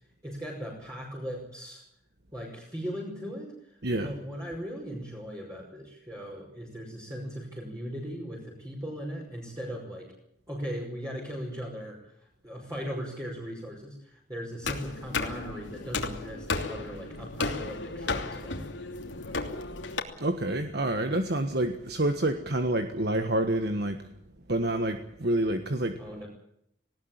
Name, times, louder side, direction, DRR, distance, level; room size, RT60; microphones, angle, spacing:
voice 1, 0.2-1.8 2.3-10.1 10.5-12.0 12.4-18.7 26.0-26.3, equal, 15° right, -4 dB, 5.5 m, -38 dB
sound 1, 14.6-20.0, left 3 dB, 75° left, 3.0 m, -34 dB
voice 2, 20.2-24.0 24.5-25.9, right 1 dB, 55° right, 7 dB, 1.5 m, -28 dB
19.5 x 18.5 x 8.9 m, 0.75 s
head